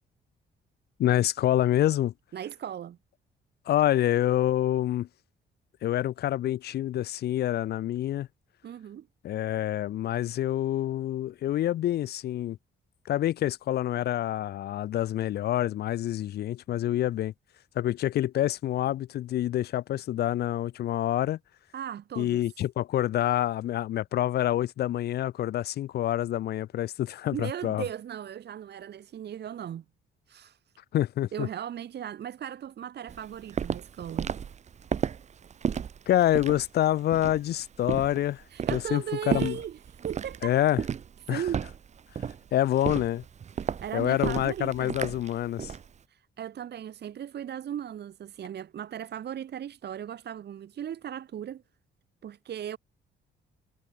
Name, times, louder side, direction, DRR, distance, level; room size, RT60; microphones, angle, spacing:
voice 1, 1.0-2.1 3.7-5.1 5.8-8.3 9.2-12.6 13.1-17.3 17.8-21.4 22.2-27.8 30.9-31.5 36.1-38.4 38.7-39.6 40.4-40.8 41.3-41.4 42.5-43.2 43.9-45.7, left 13 dB, 55° left, 0.4 m, -27 dB
voice 2, 2.3-3.0 8.6-9.1 21.7-22.4 27.3-29.8 30.3-30.6 31.3-34.3 38.5-40.6 41.3-41.6 43.5-45.0 46.1-51.6 52.2-52.8, right 9 dB, 60° right, 1.3 m, -37 dB
Walk footsteps, 33.1-45.9, right 7 dB, 35° right, 0.6 m, -33 dB
cardioid pair, 90°, 20 cm